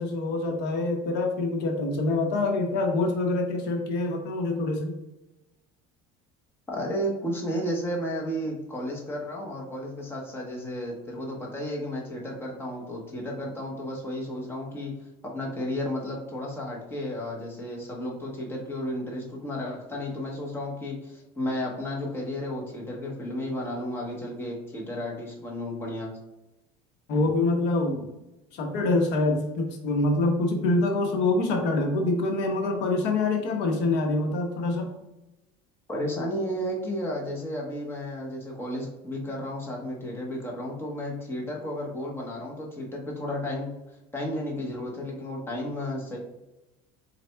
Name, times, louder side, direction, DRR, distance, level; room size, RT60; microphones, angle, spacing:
voice 1, 0.0-4.9 27.1-28.0 28.5-34.9, left 2 dB, 70° left, 3 dB, 0.8 m, -25 dB
voice 2, 6.7-14.9 15.2-26.1 35.9-43.7 44.1-46.2, equal, 15° left, -2 dB, 1.0 m, -33 dB
4.2 x 4.0 x 2.2 m, 0.95 s
cardioid pair, 135°, 18 cm